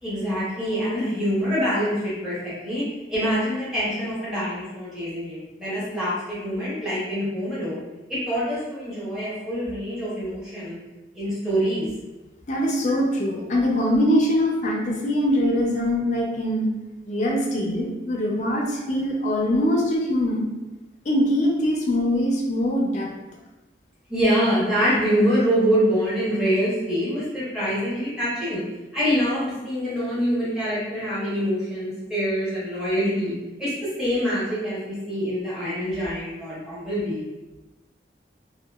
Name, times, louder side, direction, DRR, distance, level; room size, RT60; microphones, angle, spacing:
voice 1, 0.0-2.8 3.1-7.8 8.1-10.8 11.1-11.9 24.1-28.6 28.9-33.3 33.6-37.2, equal, 5° right, -11 dB, 0.9 m, -25 dB
voice 2, 12.5-16.7 17.0-20.5 21.1-23.1, equal, 40° left, -1 dB, 0.4 m, -22 dB
2.8 x 2.1 x 2.3 m, 1.1 s
head